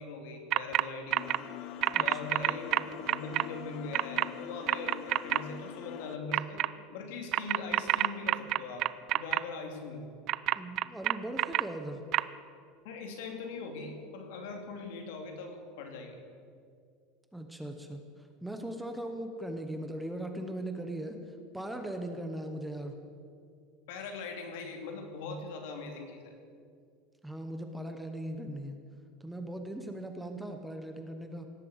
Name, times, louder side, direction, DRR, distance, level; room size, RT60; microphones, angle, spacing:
voice 1, 0.0-1.3 2.0-6.6 6.9-10.0 12.8-16.2 23.9-26.3, left 4 dB, 70° left, 4 dB, 2.7 m, -41 dB
sound 1, 0.5-0.8 1.1-1.4 1.8-3.4 3.9-4.3 4.7-5.4 6.3-6.7 7.3-9.4 10.3-11.6 12.1-12.2, right 16 dB, 35° right, 0.3 m, -27 dB
sound 2, 1.1-6.2, left 10 dB, 40° left, 0.7 m, -44 dB
voice 2, 10.6-12.0 17.3-18.0 18.4-21.2 21.5-23.0 27.2-28.8 29.2-31.5, right 1 dB, 5° right, 5 dB, 0.8 m, -39 dB
17.5 x 8.5 x 8.0 m, 2.3 s
supercardioid pair, 170°, 0 cm